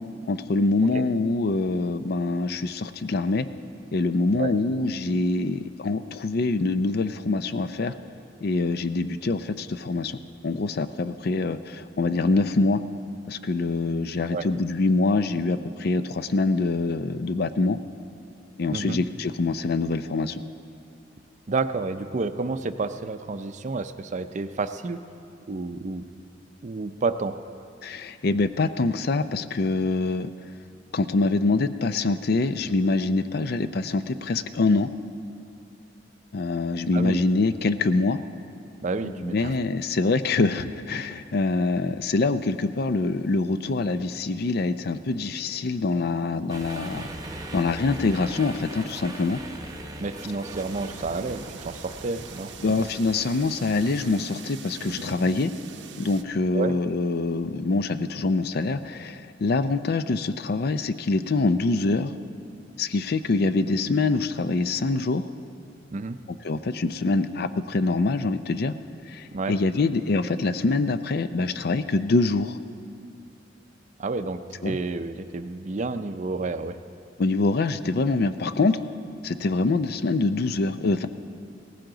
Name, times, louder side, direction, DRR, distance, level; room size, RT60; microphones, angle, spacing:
voice 1, 0.3-3.5 3.9-7.9 8.4-12.8 13.3-17.8 18.6-20.4 27.8-30.3 30.9-34.9 36.3-38.2 39.0-47.1 47.5-49.4 52.6-55.5 56.0-62.1 62.8-65.3 66.4-68.8 69.1-72.6 74.6-74.8 77.2-78.8 79.2-81.1, left 3 dB, 60° left, 12 dB, 0.5 m, -25 dB
voice 2, 21.5-25.0 25.5-26.1 26.6-27.3 36.9-37.2 38.8-39.5 50.0-52.5 56.5-56.7 65.9-66.2 69.3-69.6 74.0-76.8, right 3 dB, 40° right, 10 dB, 0.5 m, -30 dB
sound 1, 46.5-54.2, right 1 dB, 20° right, 0.9 m, -40 dB
sound 2, 50.5-56.2, right 4 dB, 75° right, 0.7 m, -41 dB
17.5 x 15.0 x 3.9 m, 2.5 s
head